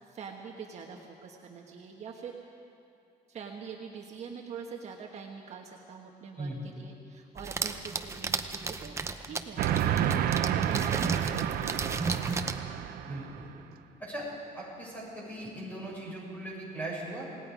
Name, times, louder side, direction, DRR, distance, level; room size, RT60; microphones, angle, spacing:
voice 1, 0.0-2.5 3.3-9.0 9.3-9.6 10.1-12.7, right 6 dB, 45° right, 1 dB, 1.4 m, -45 dB
sound 1, 7.4-12.6, right 4 dB, 20° right, 0.7 m, -34 dB
Train, 9.6-13.5, right 10 dB, 75° right, 0.8 m, -30 dB
voice 2, 13.0-13.5 14.0-14.3 14.5-17.2, right 1 dB, 10° left, -4 dB, 6.8 m, -39 dB
28.0 x 18.5 x 5.2 m, 2.7 s
cardioid pair, 165°, 16 cm